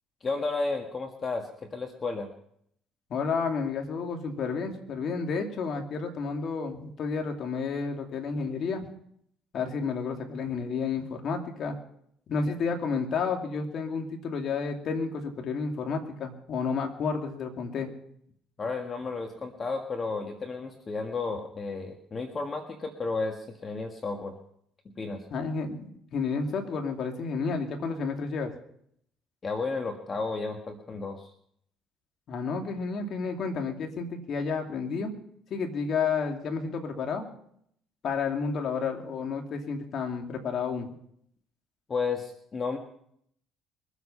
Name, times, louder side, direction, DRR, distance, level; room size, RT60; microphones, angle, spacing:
voice 1, 0.2-2.3 18.6-24.3 25.0-25.2 29.4-31.3 41.9-42.8, left 4 dB, 35° left, 4 dB, 1.7 m, -32 dB
voice 2, 3.1-8.9 9.5-11.8 12.3-17.9 25.3-28.5 32.3-35.1 35.5-37.3 38.0-40.9, left 5 dB, 55° left, 3 dB, 2.7 m, -31 dB
23.0 x 8.4 x 5.6 m, 0.69 s
supercardioid pair, 85°, 0 cm